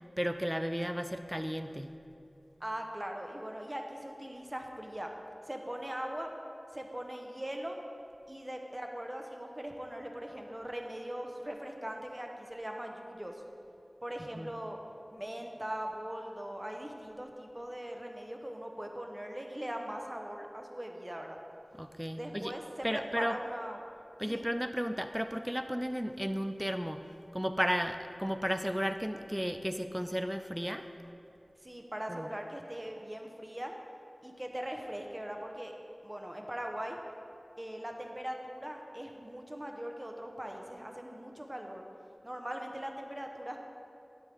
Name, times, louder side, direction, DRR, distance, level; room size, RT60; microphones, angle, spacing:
voice 1, 0.2-1.9 14.3-14.5 21.7-22.6 22.8-23.4 24.2-27.1 27.3-30.9 32.1-32.3, equal, 5° right, 8 dB, 0.4 m, -34 dB
voice 2, 2.6-5.1 5.4-6.3 6.7-7.8 8.3-13.4 14.0-14.8 15.1-21.4 22.1-23.8 24.3-24.5 31.6-33.7 34.2-35.7 36.0-37.0 37.6-41.8 42.2-43.6, equal, 25° right, 2 dB, 1.0 m, -40 dB
9.7 x 7.9 x 3.5 m, 2.8 s
wide cardioid pair, 40°, 0 cm